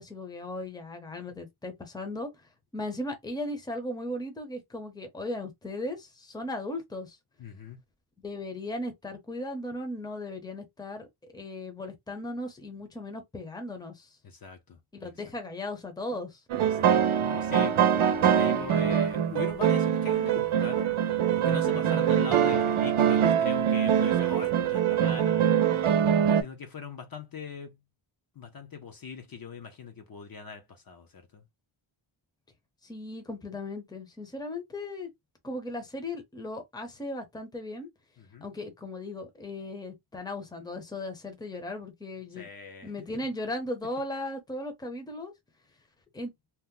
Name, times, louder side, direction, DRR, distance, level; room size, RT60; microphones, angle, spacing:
voice 1, 0.0-2.3 2.7-7.2 8.2-11.1 11.3-14.1 14.9-16.4 32.8-35.1 35.4-37.9 38.4-42.5 42.8-45.3 46.1-46.3, left 1 dB, 10° left, 0.6 m, -37 dB
voice 2, 7.4-7.8 14.2-15.1 16.6-16.9 17.2-20.9 21.3-25.5 26.4-27.8 28.4-31.4 38.2-38.5 42.3-42.9, left 5 dB, 45° left, 0.6 m, -41 dB
sound 1, 16.5-26.4, right 9 dB, 80° right, 0.7 m, -24 dB
2.9 x 2.0 x 3.6 m
wide cardioid pair, 175°, 49 cm